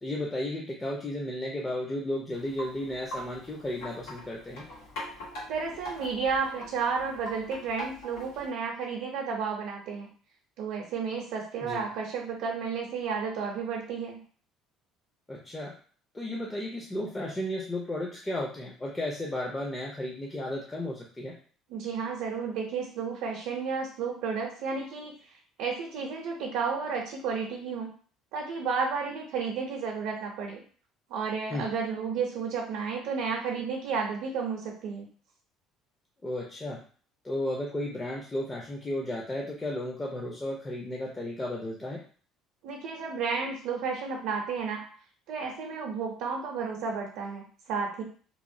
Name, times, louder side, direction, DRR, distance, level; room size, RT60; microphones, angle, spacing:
voice 1, 0.0-4.6 11.6-11.8 15.3-15.7 16.1-21.3 31.5-31.7 36.2-36.8 37.2-42.0, left 1 dB, 15° left, -2 dB, 0.4 m, -34 dB
Wind chime, 2.3-8.5, equal, 90° left, 1.3 m, -42 dB
voice 2, 5.5-10.1 10.6-14.2 21.7-25.1 25.6-27.9 28.3-30.6 31.1-35.1 42.6-44.8 45.3-48.0, right 5 dB, 80° right, 0 dB, 0.5 m, -32 dB
2.9 x 2.0 x 2.6 m, 0.43 s
cardioid pair, 135°, 0 cm